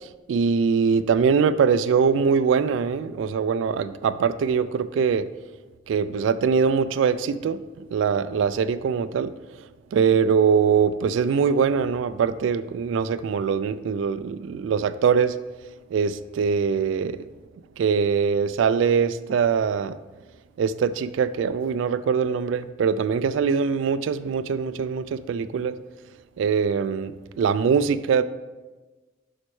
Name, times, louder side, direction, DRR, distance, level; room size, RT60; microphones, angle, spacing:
voice 1, 0.3-5.2 5.9-7.6 7.9-9.3 9.9-15.3 15.9-17.2 17.8-20.0 20.6-25.7 26.4-27.1 27.4-28.2, right 6 dB, 80° right, 13 dB, 0.3 m, -22 dB
11.5 x 4.3 x 3.2 m, 1.2 s
head